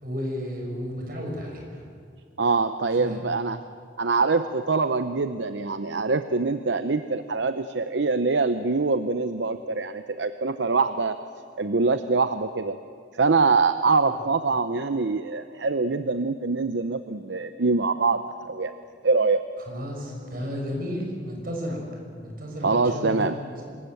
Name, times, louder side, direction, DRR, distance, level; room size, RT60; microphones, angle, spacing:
voice 1, 0.0-1.8 3.0-3.2 14.0-14.2 19.7-21.8 22.2-23.6, equal, 50° right, 0 dB, 6.2 m, -33 dB
voice 2, 2.4-3.6 4.0-11.2 11.6-12.8 13.1-18.7 19.0-19.4 22.6-23.4, right 4 dB, 70° right, 10 dB, 0.7 m, -24 dB
25.5 x 21.5 x 8.0 m, 2.2 s
head